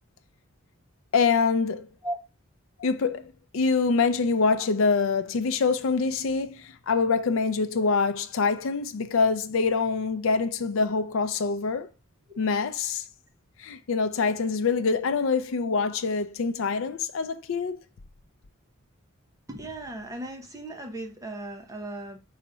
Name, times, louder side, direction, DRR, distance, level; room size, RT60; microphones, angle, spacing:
voice 1, 1.1-1.9 2.8-11.9 12.4-13.0 13.6-17.8, left 4 dB, 70° left, 0.5 m, -25 dB
voice 2, 19.5-22.2, right 1 dB, 15° right, 0.6 m, -37 dB
4.9 x 2.4 x 4.2 m
head